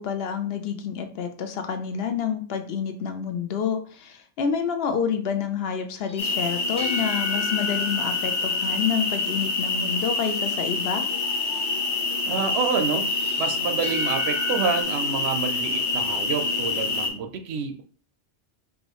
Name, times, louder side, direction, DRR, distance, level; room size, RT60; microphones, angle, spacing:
voice 1, 0.0-11.1, left 7 dB, 65° left, 7 dB, 0.8 m, -28 dB
sound 1, 6.0-9.5 13.1-14.8, left 3 dB, 5° left, 0.6 m, -36 dB
sound 2, 6.2-17.1, left 3 dB, 85° left, 1.1 m, -26 dB
voice 2, 12.3-13.1 13.4-17.8, right 6 dB, 70° right, 7 dB, 0.8 m, -28 dB
4.7 x 2.6 x 3.0 m, 0.42 s
omnidirectional pair, 1.1 m